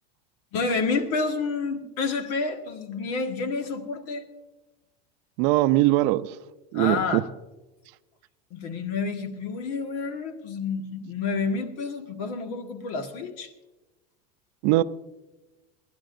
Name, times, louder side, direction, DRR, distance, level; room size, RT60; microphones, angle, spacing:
voice 1, 0.5-4.2 6.7-7.3 8.5-13.5, left 4 dB, 60° left, 6 dB, 1.7 m, -29 dB
voice 2, 5.4-6.3 6.7-7.2 14.6-14.8, right 17 dB, 55° right, 13 dB, 0.5 m, -21 dB
28.0 x 11.0 x 2.6 m, 1.1 s
supercardioid pair, 150°, 21 cm